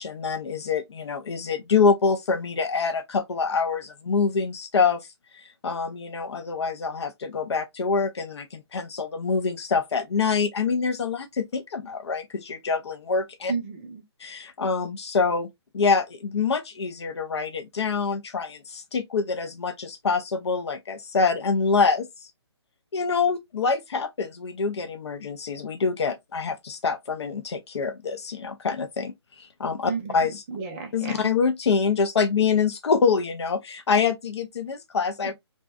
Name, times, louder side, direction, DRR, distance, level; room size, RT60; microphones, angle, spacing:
voice 1, 0.0-5.1 5.3-13.5 14.2-15.5 15.7-22.3 22.9-30.4 30.9-35.3, left 5 dB, 75° left, 0.5 m, -25 dB
voice 2, 13.5-14.0 29.9-31.2 35.2-35.3, right 5 dB, 25° right, 0.6 m, -33 dB
2.6 x 2.2 x 2.3 m
figure-of-eight pair, 140°, 14 cm